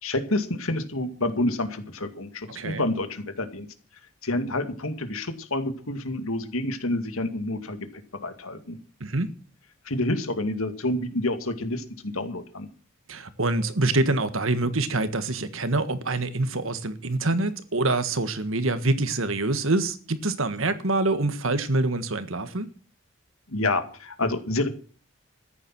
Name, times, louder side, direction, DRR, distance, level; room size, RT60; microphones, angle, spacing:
voice 1, 0.0-3.7 4.2-8.8 9.8-12.7 23.5-24.7, left 2 dB, 85° left, 2.3 m, -28 dB
voice 2, 2.5-2.8 9.0-9.3 13.1-22.7, right 2 dB, 75° right, 1.6 m, -25 dB
14.0 x 10.0 x 6.1 m
head